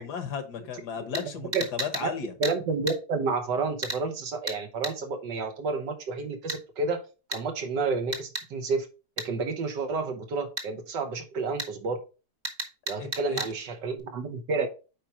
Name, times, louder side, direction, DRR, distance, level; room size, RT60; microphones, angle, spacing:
voice 1, 0.0-2.3 13.0-13.4, left 7 dB, 65° left, 1.6 m, -35 dB
voice 2, 1.0-1.6 2.0-2.1 2.4-7.0 7.3-8.9 9.2-12.0 12.9-14.7, right 4 dB, 75° right, 1.7 m, -30 dB
sound 1, 1.1-1.3 1.5-2.1 2.4-2.6 2.9-3.0 3.8-4.0 4.5-4.6 4.8-5.0 6.5-6.6 7.3-7.4 8.1-8.5 9.2-9.3 10.6-10.7 11.6-11.7 12.4-13.5 14.0-14.1, right 1 dB, 30° right, 1.2 m, -33 dB
8.7 x 4.7 x 2.9 m
omnidirectional pair, 1.9 m